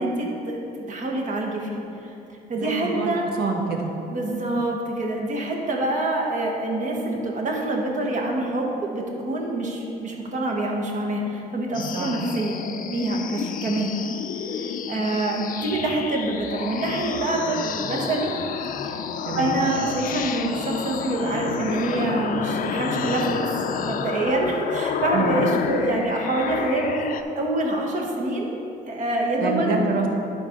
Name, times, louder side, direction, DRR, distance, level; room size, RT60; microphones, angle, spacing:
voice 1, 0.0-2.1 2.5-3.3 4.1-12.6 12.9-14.0 14.4-18.3 18.8-19.0 19.3-23.6 23.9-27.1 27.3-28.6 28.9-29.9, right 2 dB, 45° right, 0 dB, 1.5 m, -26 dB
voice 2, 2.6-3.9 11.9-12.2 19.2-19.6 25.1-25.4 29.4-30.1, right 4 dB, 70° right, 1 dB, 1.3 m, -27 dB
sound 1, 11.7-27.2, left 7 dB, 55° left, 0.5 m, -30 dB
10.5 x 4.2 x 5.2 m, 2.8 s
cardioid pair, 110°, 17 cm